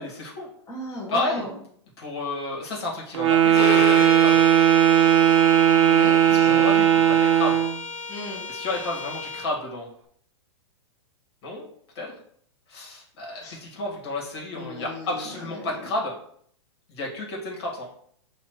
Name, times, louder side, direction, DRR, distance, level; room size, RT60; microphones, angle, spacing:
voice 1, 0.0-0.5 1.1-1.4 2.0-4.4 6.3-7.6 8.5-9.9 11.4-11.7 12.0-12.1 12.7-16.1 16.9-17.9, left 2 dB, 65° left, -2 dB, 1.8 m, -31 dB
voice 2, 0.7-1.5 5.7-6.6 8.1-8.4 13.4-13.6 14.5-15.1 15.6-15.8, left 1 dB, 20° left, -4 dB, 1.3 m, -36 dB
Wind instrument woodwind instrument, 3.1-7.7, right 10 dB, 75° right, 0.7 m, -17 dB
Bowed string instrument, 3.5-9.5, left 5 dB, 40° left, 0.8 m, -33 dB
5.8 x 2.8 x 3.1 m, 0.64 s
hypercardioid pair, 120°, 15 cm